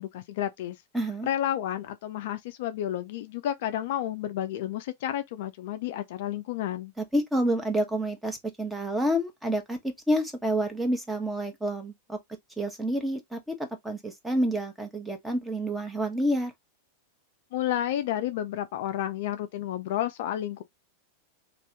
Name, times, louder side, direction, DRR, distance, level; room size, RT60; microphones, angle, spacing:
voice 1, 0.0-0.8 1.2-6.9 17.5-20.6, left 11 dB, 55° left, 0.4 m, -31 dB
voice 2, 0.9-1.3 7.0-9.8 10.1-12.2 12.6-16.5, right 1 dB, 5° right, 0.9 m, -28 dB
2.6 x 2.5 x 3.2 m
figure-of-eight pair, 90°, 0 cm